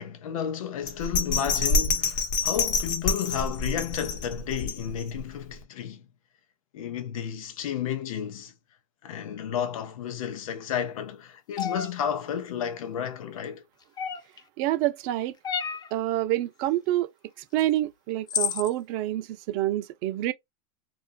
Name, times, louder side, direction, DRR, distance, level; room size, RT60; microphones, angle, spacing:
voice 1, 0.0-6.0 6.7-8.5 9.0-13.6, left 8 dB, 80° left, 0.6 m, -32 dB
Bell, 0.9-5.2 5.6-5.7, left 3 dB, 45° left, 0.9 m, -27 dB
sound 1, 11.6-11.9 14.0-14.4 15.4-15.9 17.6-17.7 18.3-18.7, left 7 dB, 25° left, 0.4 m, -29 dB
voice 2, 14.6-15.3 15.9-17.1 17.5-20.3, right 14 dB, 55° right, 0.6 m, -27 dB
2.4 x 2.3 x 2.5 m
hypercardioid pair, 110°, 18 cm